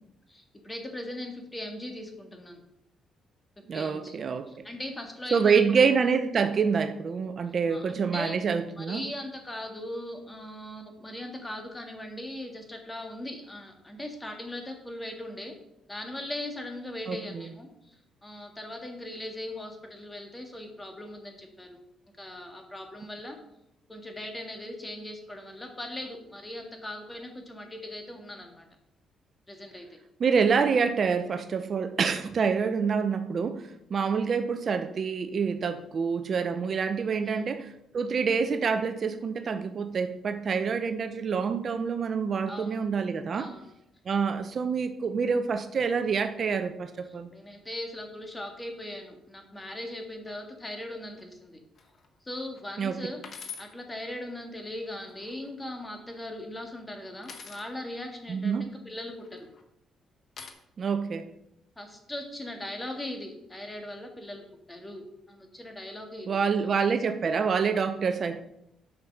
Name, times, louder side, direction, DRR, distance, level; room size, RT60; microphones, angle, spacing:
voice 1, 0.3-2.6 3.7-4.2 4.5-5.6 7.7-8.4 8.8-15.5 15.9-17.9 18.2-21.8 22.2-23.4 23.9-28.7 29.5-29.9 37.2-37.5 42.5-42.7 43.3-43.7 47.3-51.6 52.2-53.2 53.6-59.5 61.8-66.4, left 1 dB, 15° left, 4 dB, 2.0 m, -39 dB
voice 2, 3.7-4.5 5.3-9.0 17.1-17.5 30.2-33.6 33.9-43.5 44.1-47.3 52.8-53.0 58.3-58.6 60.8-61.3 66.3-68.4, right 5 dB, 50° right, 9 dB, 0.7 m, -27 dB
sound 1, 51.8-52.1 52.6-52.7 53.2-53.7 54.9-55.5 57.2-57.7 59.1-59.6 60.4-60.5, left 6 dB, 50° left, 1.3 m, -44 dB
8.5 x 6.0 x 5.4 m, 0.81 s
cardioid pair, 90°, 0 cm